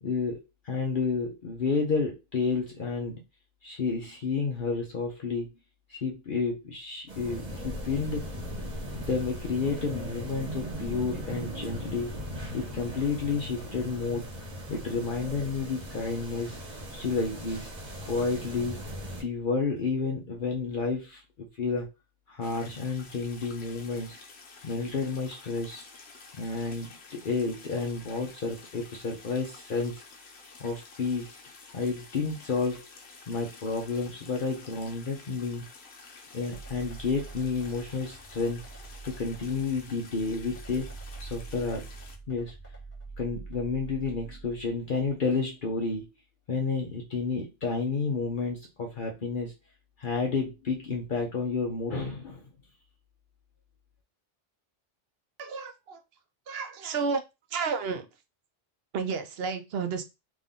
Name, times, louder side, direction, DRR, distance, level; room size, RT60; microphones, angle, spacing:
voice 1, 0.0-3.2 3.6-5.5 5.9-8.3 8.9-12.1 12.5-14.3 14.7-16.6 16.9-17.7 18.1-18.8 19.2-21.9 22.3-24.2 24.6-25.8 26.4-30.0 30.6-31.4 31.7-32.9 33.3-35.6 36.3-38.6 39.0-40.9 41.2-41.9 42.3-42.5 43.2-46.1 46.5-49.5 50.0-52.4, left 4 dB, 55° left, 0 dB, 0.9 m, -31 dB
sound 1, 7.1-19.2, equal, 40° right, 1.2 m, -38 dB
sound 2, 22.4-42.2, left 4 dB, 70° left, 1.1 m, -50 dB
sound 3, 36.5-45.1, right 3 dB, 10° left, 1.6 m, -45 dB
voice 2, 55.4-56.0 56.5-57.2 57.5-58.1 58.9-60.0, right 5 dB, 70° right, 8 dB, 0.9 m, -31 dB
3.7 x 2.6 x 3.6 m, 0.24 s
omnidirectional pair, 1.1 m